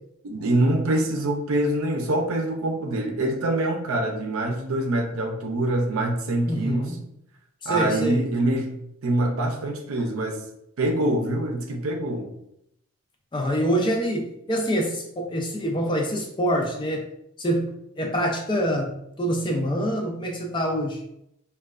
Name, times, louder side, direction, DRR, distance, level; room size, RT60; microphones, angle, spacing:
voice 1, 0.2-6.9 7.7-8.7 9.0-10.4 10.8-12.3, right 1 dB, 85° right, 3 dB, 0.5 m, -25 dB
voice 2, 6.5-7.0 7.6-8.3 13.3-17.0 17.4-17.7 18.0-21.0, equal, 20° left, 0 dB, 0.4 m, -25 dB
3.1 x 2.2 x 2.4 m, 0.78 s
head